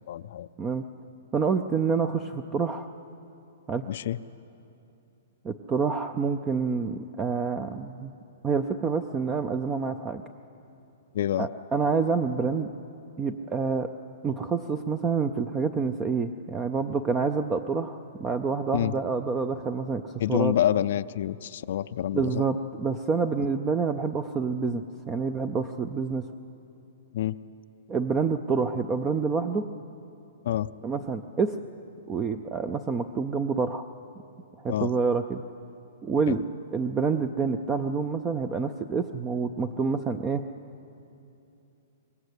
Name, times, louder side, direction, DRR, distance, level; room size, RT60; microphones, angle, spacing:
voice 1, 0.1-0.5 3.9-4.2 11.1-11.5 18.7-18.9 20.2-22.5 27.1-27.4 30.4-30.7 34.7-34.9 36.3-36.4, left 11 dB, 50° left, 13 dB, 0.5 m, -27 dB
voice 2, 1.3-2.9 3.7-3.8 5.4-8.1 8.4-10.2 11.4-12.7 13.2-13.9 14.2-20.5 22.1-26.3 27.9-29.7 30.8-31.6 32.1-33.9 34.6-35.4 36.0-40.4, right 5 dB, 15° right, 10 dB, 0.4 m, -27 dB
24.5 x 20.5 x 8.2 m, 2.8 s
hypercardioid pair, 170°, 0 cm